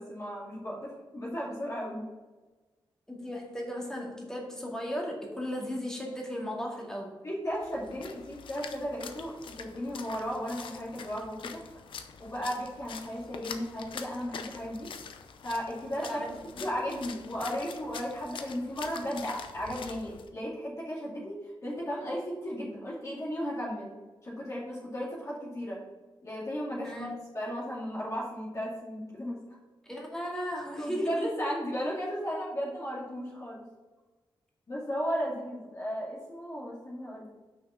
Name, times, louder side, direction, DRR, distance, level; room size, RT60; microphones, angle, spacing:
voice 1, 0.0-2.0 7.2-11.6 12.2-14.9 15.4-16.1 16.6-21.4 21.6-23.9 24.2-25.8 26.2-29.6 30.8-33.6 34.7-37.3, equal, 35° left, -5 dB, 2.4 m, -35 dB
voice 2, 3.1-7.2 16.0-16.3 16.6-16.7 26.8-27.2 29.8-31.3, equal, 5° left, -3 dB, 2.1 m, -36 dB
Splash splatter, 7.5-20.3, left 6 dB, 90° left, 0.7 m, -45 dB
6.2 x 5.8 x 5.6 m, 1.2 s
wide cardioid pair, 110°, 8 cm